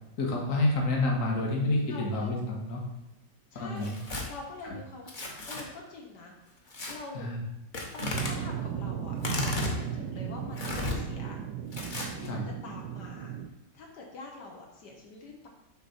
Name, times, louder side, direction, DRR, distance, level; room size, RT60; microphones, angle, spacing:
voice 1, 0.2-2.8 3.5-4.0 7.1-7.4 12.2-12.4, left 2 dB, 55° left, -1 dB, 1.7 m, -28 dB
voice 2, 1.8-2.3 3.5-3.9 4.3-5.2 5.5-6.3 6.9-7.3 7.9-11.4 12.1-13.3 13.7-15.5, left 3 dB, 80° left, 0 dB, 1.7 m, -45 dB
Tearing, 3.8-4.2 5.1-5.6 6.7-6.9 7.7-8.3 9.2-9.8 10.6-11.0 11.7-12.3, left 1 dB, 35° left, 1.0 m, -33 dB
sound 1, 8.1-13.5, right 8 dB, 80° right, 1.2 m, -36 dB
6.7 x 3.7 x 5.7 m, 0.97 s
omnidirectional pair, 1.8 m